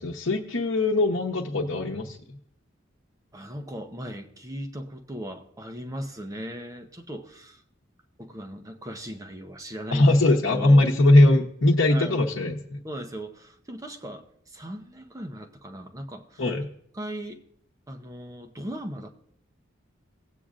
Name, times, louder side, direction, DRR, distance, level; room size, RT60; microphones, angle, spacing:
voice 1, 0.0-2.2 9.9-12.8 16.4-16.6, left 2 dB, 80° left, -1 dB, 0.9 m, -20 dB
voice 2, 3.3-7.6 8.2-10.2 10.4-11.0 11.9-12.2 12.8-16.4 16.9-17.4 17.9-19.1, equal, 20° right, 4 dB, 0.8 m, -38 dB
17.5 x 8.4 x 2.5 m, 0.67 s
head